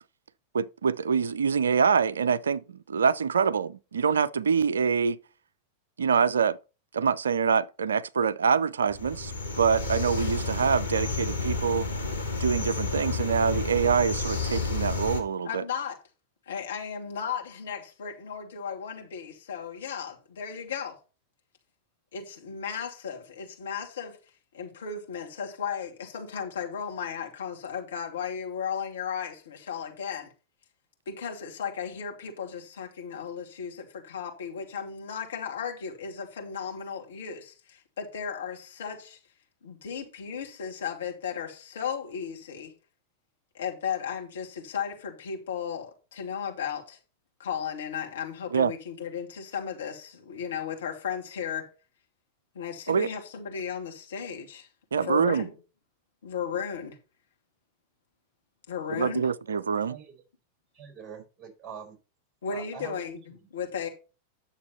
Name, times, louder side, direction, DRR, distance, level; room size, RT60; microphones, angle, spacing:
voice 1, 0.5-5.2 6.0-6.6 6.9-9.3 9.6-11.9 12.4-15.6 48.5-48.7 52.9-53.1 54.9-55.5 58.9-60.0, right 6 dB, 70° right, 0.5 m, -25 dB
sound 1, 8.9-15.2, left 3 dB, 85° left, 2.3 m, -31 dB
voice 2, 15.4-16.0 16.5-20.9 22.1-24.2 24.5-30.3 31.1-39.2 39.6-42.7 43.5-47.0 47.4-51.7 52.5-54.7 54.9-55.5 56.2-57.0 58.7-59.3 62.4-63.9, left 7 dB, 65° left, 2.6 m, -35 dB
voice 3, 60.7-62.0 62.5-63.0, right 7 dB, 20° right, 4.5 m, -43 dB
9.7 x 7.0 x 4.3 m
figure-of-eight pair, 90°, 0 cm